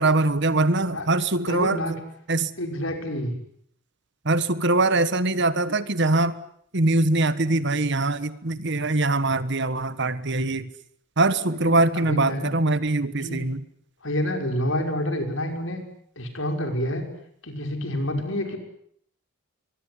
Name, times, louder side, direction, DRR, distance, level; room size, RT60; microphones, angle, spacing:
voice 1, 0.0-1.8 2.3-2.5 4.2-6.4 6.7-10.7 11.2-13.6, right 2 dB, 55° right, 15 dB, 1.4 m, -22 dB
voice 2, 1.5-1.9 2.6-3.4 11.5-12.5 13.2-13.4 14.0-15.8 16.2-17.1 17.4-18.6, left 1 dB, 65° left, 5 dB, 5.9 m, -28 dB
24.0 x 22.5 x 9.9 m, 0.67 s
head